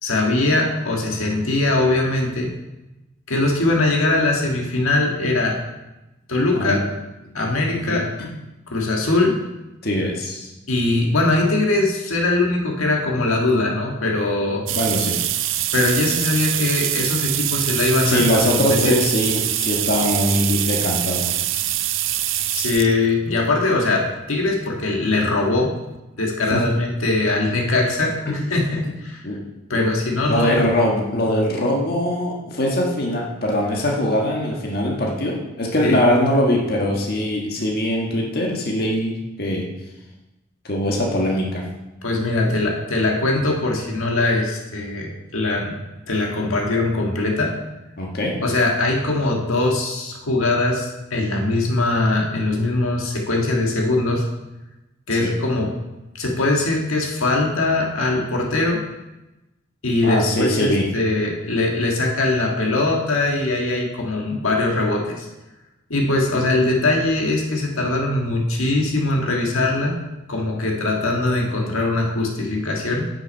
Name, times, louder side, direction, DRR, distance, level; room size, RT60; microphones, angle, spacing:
voice 1, 0.0-2.5 3.3-5.6 6.3-6.8 7.3-8.1 8.7-9.4 10.7-14.6 15.7-18.2 18.5-19.0 22.5-25.7 26.2-28.2 28.5-29.2 29.7-30.6 35.8-36.0 42.0-45.8 46.1-47.5 48.4-54.2 55.1-55.7 56.1-58.8 59.8-65.3 65.9-70.0 70.3-73.1, left 2 dB, 85° left, 0 dB, 1.7 m, -21 dB
voice 2, 7.9-8.3 9.8-10.5 14.7-15.2 18.0-21.3 26.5-26.6 28.3-28.4 29.2-29.4 29.7-29.8 30.2-39.6 40.6-41.6 48.0-48.3 55.2-55.3 60.0-60.8, left 1 dB, 45° left, -1 dB, 1.5 m, -22 dB
sound 1, 14.7-22.9 23.8-23.9 25.2-25.3 25.6-25.7 26.0-26.1, right 12 dB, 70° right, 0.5 m, -24 dB
8.7 x 6.1 x 5.4 m, 1.0 s
head